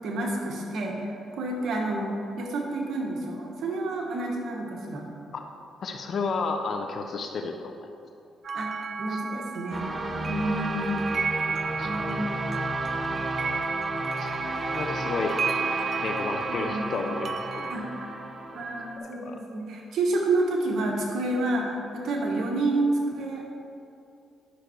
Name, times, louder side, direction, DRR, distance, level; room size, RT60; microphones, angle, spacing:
voice 1, 0.0-5.1 8.5-8.7 9.0-9.9 10.3-11.2 11.8-12.3 16.5-16.9 17.7-18.1 18.5-23.4, right 2 dB, 70° right, 0 dB, 1.4 m, -29 dB
voice 2, 5.8-7.9 9.1-9.4 11.8-11.9 14.2-15.4 16.0-17.7 19.2-19.4, left 4 dB, 55° left, 4 dB, 0.7 m, -32 dB
sound 1, 8.4-17.8, right 5 dB, 50° right, 0.4 m, -33 dB
sound 2, 9.7-19.0, right 1 dB, 25° right, 1.0 m, -33 dB
11.0 x 6.4 x 4.5 m, 2.6 s
cardioid pair, 90°, 0 cm